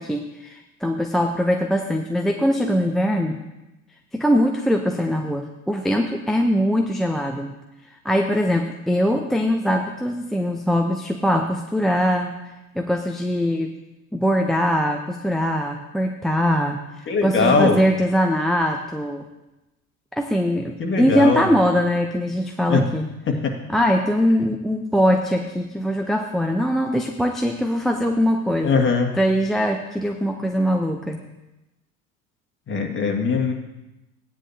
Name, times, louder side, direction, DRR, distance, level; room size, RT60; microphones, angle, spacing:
voice 1, 0.0-3.4 4.1-7.5 8.0-12.3 12.8-13.8 14.1-19.3 20.1-23.1 23.7-28.8 29.2-31.2, equal, ahead, 2 dB, 0.7 m, -22 dB
voice 2, 17.1-17.8 20.8-21.5 22.7-22.9 23.3-23.5 28.6-29.1 32.7-33.5, left 4 dB, 25° left, 3 dB, 1.9 m, -20 dB
16.0 x 9.9 x 2.8 m, 0.99 s
figure-of-eight pair, 70°, 43 cm